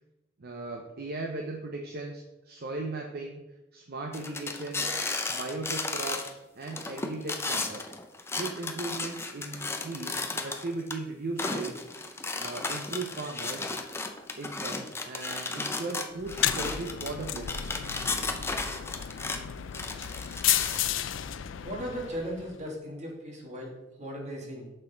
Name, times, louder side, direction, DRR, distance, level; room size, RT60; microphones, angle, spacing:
voice 1, 0.4-3.4 3.7-4.9 5.3-8.0 8.4-11.8 12.4-13.7 14.4-17.6, right 2 dB, 55° right, 2 dB, 0.7 m, -37 dB
sound 1, 4.1-6.3 6.6-10.9 11.4-19.4 19.7-20.8, left 3 dB, 15° left, 0.5 m, -34 dB
sound 2, 16.2-22.6, left 11 dB, 80° left, 0.4 m, -32 dB
voice 2, 21.6-24.7, equal, 40° right, 0 dB, 1.7 m, -37 dB
6.6 x 6.0 x 3.9 m, 1.0 s
head